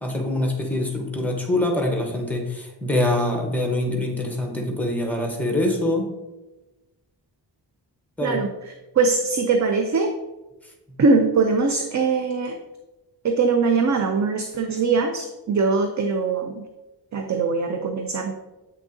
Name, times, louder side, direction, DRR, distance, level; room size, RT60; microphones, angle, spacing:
voice 1, 0.0-6.1 8.2-8.4, left 1 dB, 5° left, 2 dB, 0.9 m, -24 dB
voice 2, 8.9-10.1 11.0-12.6 13.2-16.6 17.1-18.3, right 4 dB, 45° right, 5 dB, 0.5 m, -21 dB
7.7 x 6.1 x 2.6 m, 1.1 s
wide cardioid pair, 170°, 41 cm